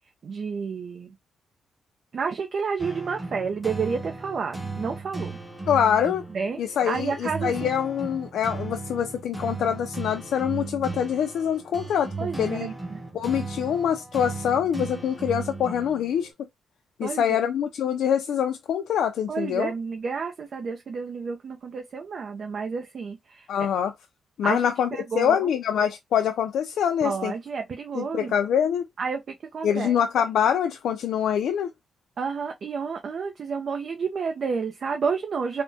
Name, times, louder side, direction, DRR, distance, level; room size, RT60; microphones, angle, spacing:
voice 1, 0.2-1.1 2.1-5.4 6.3-6.6 6.9-7.7 12.2-13.0 14.7-14.9 17.0-17.4 19.3-23.5 24.4-25.5 27.0-28.3 29.0-29.2 29.5-29.9 32.2-35.6, right 5 dB, 50° right, 0.5 m, -30 dB
sound 1, 2.8-16.3, right 3 dB, 5° right, 0.9 m, -36 dB
voice 2, 5.7-6.2 6.6-12.1 12.4-12.7 13.1-16.3 17.0-19.7 23.5-23.9 24.4-24.9 25.2-27.3 27.9-28.8 29.6-31.7, left 8 dB, 85° left, 0.3 m, -25 dB
3.4 x 2.1 x 2.6 m
cardioid pair, 110°, 0 cm